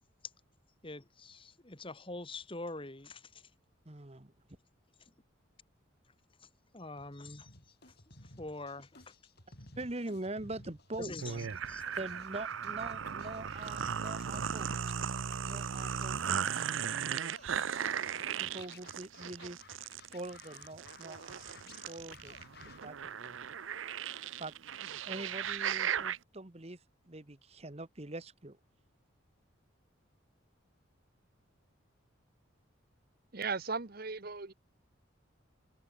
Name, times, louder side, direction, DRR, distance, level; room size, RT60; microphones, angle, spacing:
voice 1, 0.8-3.5 5.0-5.1 6.4-6.5 6.7-9.2 11.0-11.8, left 2 dB, 25° left, 2.0 m, -45 dB
voice 2, 3.8-4.3 9.8-11.4 12.0-14.9 15.4-16.4 17.0-17.6 18.3-19.6 20.1-22.4 22.6-23.5 24.4-24.5 25.0-26.8 27.0-28.6, right 2 dB, 30° right, 1.3 m, -44 dB
Scratching (performance technique), 6.9-22.8, left 3 dB, 50° left, 8.0 m, -56 dB
sound 1, 11.2-26.2, right 8 dB, 70° right, 0.6 m, -37 dB
voice 3, 33.3-34.5, right 4 dB, 50° right, 1.1 m, -36 dB
head